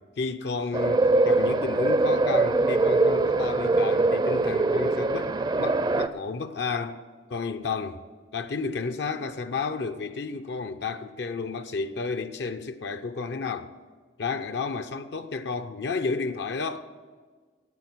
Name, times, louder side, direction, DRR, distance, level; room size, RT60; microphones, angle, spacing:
voice 1, 0.2-7.0 7.3-8.0 8.3-13.7 14.2-16.9, left 4 dB, 65° left, 0.6 m, -32 dB
sound 1, 0.7-6.1, right 2 dB, 25° right, 0.4 m, -23 dB
9.4 x 8.6 x 9.5 m
head